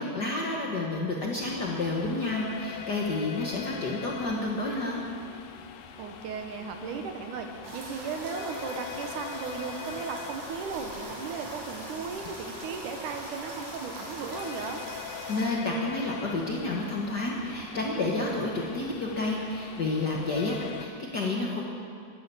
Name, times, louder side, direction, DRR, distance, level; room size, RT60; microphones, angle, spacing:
voice 1, 0.0-5.0 15.3-21.6, left 2 dB, 65° left, -2 dB, 1.0 m, -30 dB
sound 1, 1.4-20.9, left 9 dB, 90° left, 2.5 m, -43 dB
voice 2, 6.0-14.8, right 5 dB, 75° right, 5 dB, 2.5 m, -36 dB
sound 2, 7.6-15.5, right 1 dB, 55° right, 4.2 m, -42 dB
11.5 x 11.5 x 8.3 m, 2.3 s
omnidirectional pair, 3.7 m